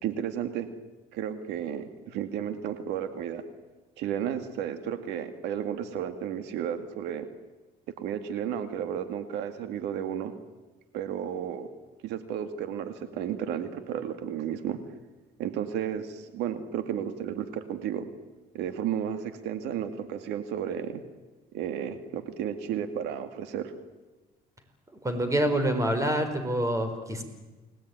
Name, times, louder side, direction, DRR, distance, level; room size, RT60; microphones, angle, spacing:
voice 1, 0.0-0.7 1.1-3.4 4.0-7.3 8.0-10.3 10.9-11.7 12.0-14.8 15.4-18.1 18.5-21.0 21.5-23.7, right 9 dB, 90° right, 9 dB, 2.1 m, -33 dB
voice 2, 25.0-27.2, right 1 dB, 20° right, 8 dB, 4.6 m, -26 dB
29.5 x 19.5 x 9.5 m, 1.2 s
cardioid pair, 110°, 17 cm